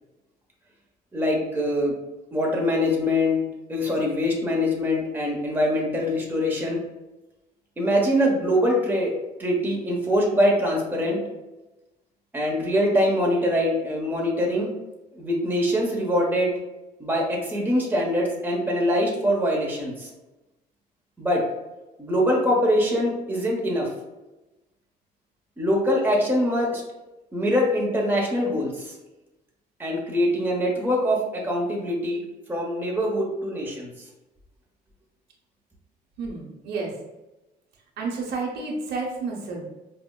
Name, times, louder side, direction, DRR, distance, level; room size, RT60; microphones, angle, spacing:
voice 1, 1.1-1.9 2.3-3.4 3.7-6.8 7.8-9.1 9.4-11.2 12.3-14.7 15.1-16.5 17.0-20.1 21.2-21.4 22.0-23.9 25.6-26.8 27.3-28.9 29.8-32.2 32.5-33.9, equal, 10° right, -2 dB, 0.8 m, -23 dB
voice 2, 36.2-36.9 38.0-39.6, right 3 dB, 80° right, -2 dB, 0.9 m, -30 dB
4.9 x 2.0 x 2.2 m, 1.0 s
cardioid pair, 110°, 17 cm